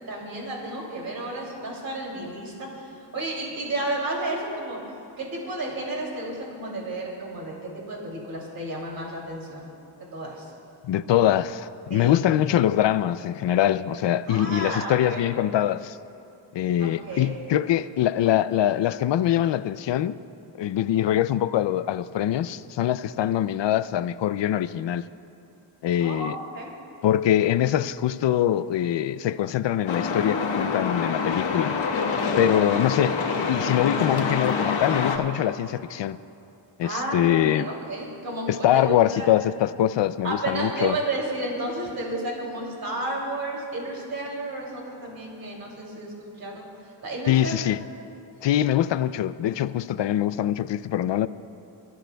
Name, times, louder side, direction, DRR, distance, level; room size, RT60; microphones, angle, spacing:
voice 1, 0.1-4.8 5.2-9.6 10.1-10.5 11.9-12.2 14.3-15.2 16.6-17.4 26.0-26.7 36.8-39.3 40.2-46.6 47.0-47.6, right 2 dB, 50° right, 2.8 m, -32 dB
voice 2, 10.8-16.0 16.5-20.2 20.6-25.0 25.8-26.4 27.0-31.8 32.4-33.2 33.4-36.2 36.8-37.7 38.5-41.0 47.3-47.8 48.4-51.3, left 11 dB, 70° left, 0.5 m, -23 dB
Truck, 29.9-35.2, left 5 dB, 90° left, 1.3 m, -26 dB
29.0 x 14.5 x 2.3 m
wide cardioid pair, 170°, 45 cm